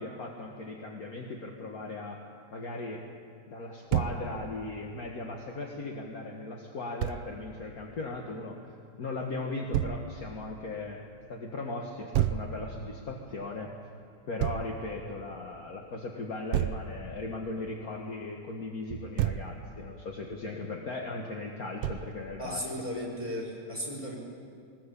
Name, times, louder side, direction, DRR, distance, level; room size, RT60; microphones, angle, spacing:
voice 1, 0.0-2.2 2.5-3.0 3.5-8.6 9.0-11.0 11.3-13.7 14.3-22.6, left 2 dB, 40° left, 0 dB, 1.4 m, -38 dB
Thump thud, 3.9-4.2 7.0-7.2 9.7-10.0 12.1-12.5 14.4-14.7 16.5-16.9 18.9-19.5 21.8-22.1, right 12 dB, 85° right, 1.3 m, -28 dB
voice 2, 22.4-24.1, equal, 10° left, -1 dB, 4.6 m, -35 dB
20.0 x 19.5 x 8.4 m, 2.4 s
omnidirectional pair, 3.4 m